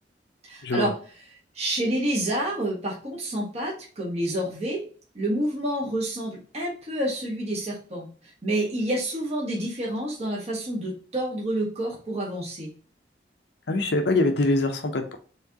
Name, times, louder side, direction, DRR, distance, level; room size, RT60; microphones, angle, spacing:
voice 1, 0.4-0.9 1.5-4.8 5.1-12.7, right 1 dB, 35° right, -4 dB, 1.4 m, -28 dB
voice 2, 13.7-15.2, left 2 dB, 70° left, 5 dB, 0.7 m, -23 dB
4.5 x 3.6 x 2.9 m, 0.41 s
head